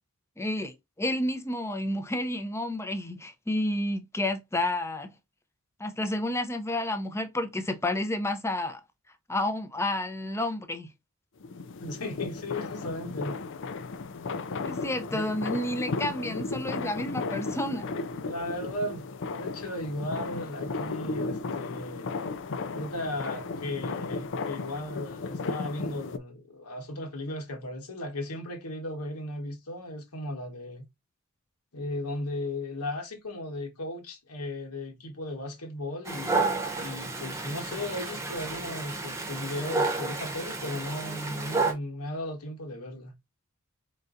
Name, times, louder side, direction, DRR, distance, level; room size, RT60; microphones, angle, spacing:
voice 1, 0.4-5.1 5.8-8.8 9.3-10.9 14.6-17.9, left 1 dB, 10° left, 0.6 m, -30 dB
sound 1, 11.4-26.2, left 4 dB, 55° left, 0.5 m, -35 dB
voice 2, 11.8-13.4 15.1-15.2 18.3-19.0 19.3-22.1 22.7-30.8 31.7-43.1, left 1 dB, 90° left, 1.4 m, -36 dB
Dog, 36.0-41.7, right 3 dB, 15° right, 1.0 m, -31 dB
4.5 x 4.0 x 2.5 m
head